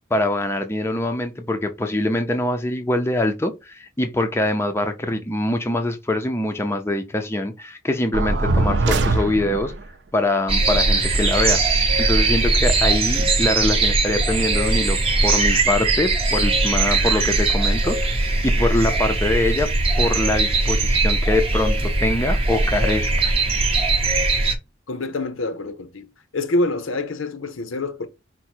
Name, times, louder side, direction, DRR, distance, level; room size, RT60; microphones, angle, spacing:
voice 1, 0.1-9.7 10.1-11.6 12.0-19.7 20.0-23.3, left 1 dB, 10° left, 0.4 m, -24 dB
sound 1, 8.1-9.8, right 2 dB, 60° right, 0.5 m, -21 dB
sound 2, 10.5-24.6, right 3 dB, 30° right, 0.8 m, -20 dB
voice 2, 24.9-26.1 26.3-28.1, left 2 dB, 90° left, 0.7 m, -26 dB
4.7 x 2.1 x 4.3 m
head